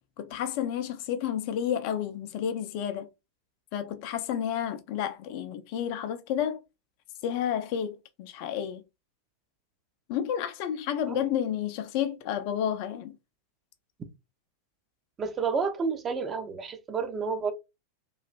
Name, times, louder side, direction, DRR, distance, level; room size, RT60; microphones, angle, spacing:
voice 1, 0.2-3.1 3.7-6.6 7.2-8.8 10.1-13.2, left 9 dB, 45° left, 0.4 m, -31 dB
voice 2, 15.2-17.5, right 5 dB, 25° right, 0.5 m, -30 dB
3.1 x 2.4 x 2.3 m
figure-of-eight pair, 90°, 0 cm